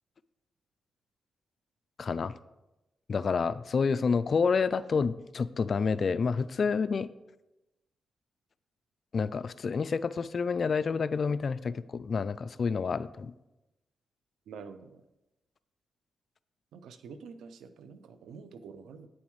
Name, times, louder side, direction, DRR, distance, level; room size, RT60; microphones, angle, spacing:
voice 1, 2.0-2.4 3.1-7.1 9.1-13.3, left 5 dB, 55° left, 15 dB, 0.3 m, -29 dB
voice 2, 14.5-15.0 16.7-19.1, right 5 dB, 90° right, 11 dB, 0.5 m, -47 dB
8.7 x 7.1 x 3.2 m, 0.99 s
cardioid pair, 60°, 0 cm